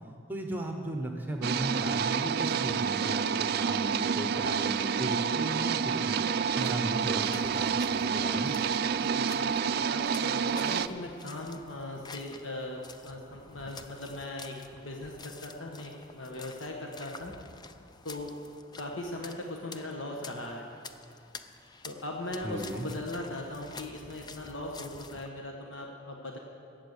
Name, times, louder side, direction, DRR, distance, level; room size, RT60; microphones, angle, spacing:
voice 1, 0.3-6.2 6.5-8.5 22.4-22.9, right 1 dB, 10° right, 3 dB, 0.9 m, -36 dB
sound 1, 1.4-10.9, right 6 dB, 50° right, 0.4 m, -29 dB
sound 2, 6.4-25.3, left 4 dB, 20° left, 0.5 m, -50 dB
voice 2, 9.0-17.3 18.0-18.3 18.8-20.7 21.8-26.4, left 1 dB, 70° left, 1 dB, 1.3 m, -39 dB
16.5 x 8.2 x 6.7 m, 2.4 s
head